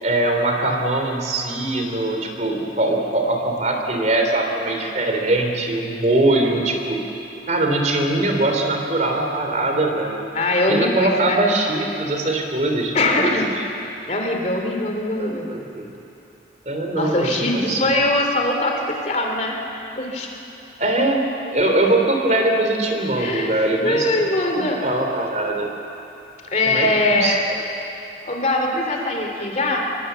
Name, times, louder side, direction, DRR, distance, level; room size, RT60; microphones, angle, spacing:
voice 1, 0.0-7.0 7.5-10.3 10.7-13.3 15.2-15.9 16.6-17.9 20.8-25.7 26.6-27.3, right 2 dB, 40° right, 2 dB, 3.1 m, -22 dB
voice 2, 10.3-11.4 12.9-13.5 14.1-15.5 16.9-20.3 23.2-23.5 23.8-24.8 26.4-27.4 28.2-29.9, left 2 dB, 40° left, 2 dB, 2.7 m, -22 dB
25.0 x 21.5 x 8.0 m, 2.9 s
head